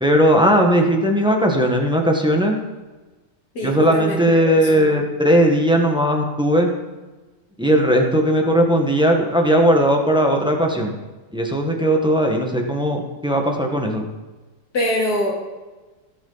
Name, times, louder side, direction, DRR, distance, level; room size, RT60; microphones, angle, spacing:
voice 1, 0.0-2.6 3.6-6.8 7.6-10.9 11.3-14.0, equal, 5° right, 2 dB, 1.1 m, -18 dB
voice 2, 3.5-5.0 14.7-15.3, left 1 dB, 80° left, -2 dB, 3.0 m, -24 dB
17.5 x 6.3 x 4.0 m, 1.2 s
omnidirectional pair, 1.7 m